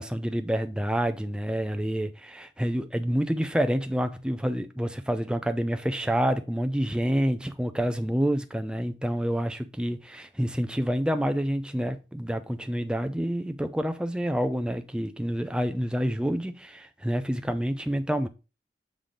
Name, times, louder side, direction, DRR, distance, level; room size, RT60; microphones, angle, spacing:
voice 1, 0.0-18.3, equal, 5° right, 0.4 m, -28 dB
7.4 x 3.5 x 3.8 m
head